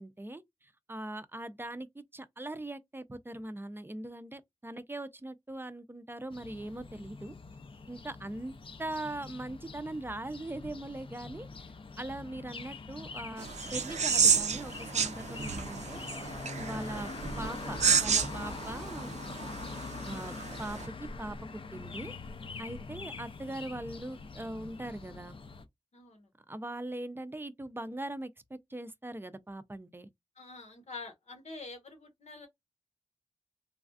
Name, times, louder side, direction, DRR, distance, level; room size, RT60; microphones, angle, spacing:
voice 1, 0.0-7.3 7.9-8.5 8.8-11.7 12.0-16.0 16.6-17.1 17.4-19.1 20.1-20.8 21.2-22.1 22.6-25.4 26.5-30.1, right 1 dB, 20° right, 0.4 m, -41 dB
sound 1, 6.3-25.6, left 4 dB, 50° left, 0.4 m, -44 dB
sound 2, 13.4-20.9, right 6 dB, 85° right, 0.4 m, -31 dB
voice 2, 25.9-26.3 30.3-32.5, left 3 dB, 75° left, 1.1 m, -46 dB
3.2 x 2.3 x 2.4 m
cardioid pair, 55°, 11 cm